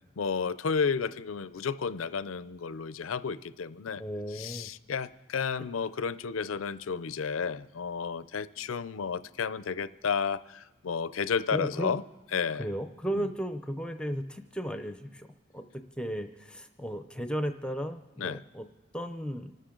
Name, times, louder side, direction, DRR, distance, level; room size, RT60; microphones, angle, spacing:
voice 1, 0.2-4.0 4.3-12.0 12.3-12.7 13.1-13.3 18.2-18.4, left 5 dB, 90° left, 15 dB, 0.6 m, -32 dB
voice 2, 4.0-4.7 11.5-12.0 12.6-15.3 15.5-15.6 16.0-18.7 18.9-19.5, equal, 5° left, 8 dB, 0.6 m, -35 dB
26.0 x 13.0 x 3.8 m, 1.1 s
head